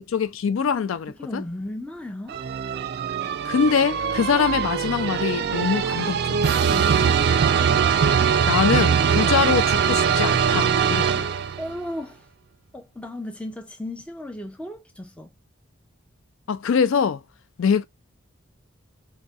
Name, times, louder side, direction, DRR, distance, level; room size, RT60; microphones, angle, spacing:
voice 1, 0.0-1.4 3.4-6.6 8.4-11.3 16.5-17.2 17.6-17.8, left 6 dB, 75° left, 0.4 m, -23 dB
voice 2, 1.1-2.4 6.5-7.3 11.6-12.3 12.7-15.3, left 1 dB, 5° left, 0.5 m, -35 dB
sound 1, 2.3-11.8, right 7 dB, 50° right, 0.3 m, -22 dB
4.0 x 2.2 x 3.5 m
head